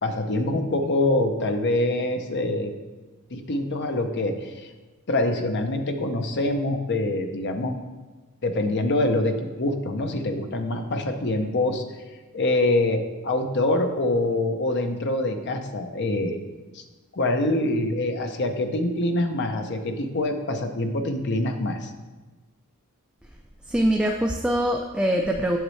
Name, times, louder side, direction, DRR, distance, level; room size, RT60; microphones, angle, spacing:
voice 1, 0.0-2.8 3.3-4.7 5.1-7.8 8.4-11.8 12.3-16.4 16.7-16.8 17.1-21.9, left 2 dB, 50° left, 6 dB, 0.7 m, -25 dB
voice 2, 23.7-25.6, right 1 dB, 5° right, 2 dB, 0.4 m, -23 dB
7.9 x 7.2 x 3.2 m, 1.2 s
head